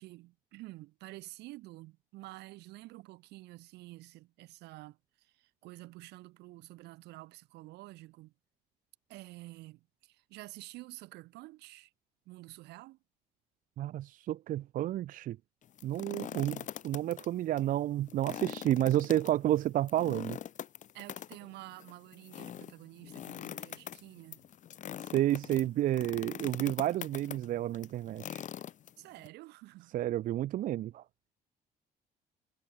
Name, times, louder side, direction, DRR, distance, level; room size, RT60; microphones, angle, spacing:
voice 1, 0.0-8.3 9.1-11.9 12.3-13.0 16.1-16.6 20.9-24.4 29.0-30.0, right 19 dB, 85° right, 1.9 m, -50 dB
voice 2, 13.8-15.4 15.8-16.6 16.8-20.4 25.0-28.4 29.9-31.0, right 13 dB, 55° right, 0.4 m, -30 dB
sound 1, 15.6-17.3 17.6-17.7 18.1-29.3, left 10 dB, 45° left, 0.9 m, -43 dB
cardioid pair, 110°, 17 cm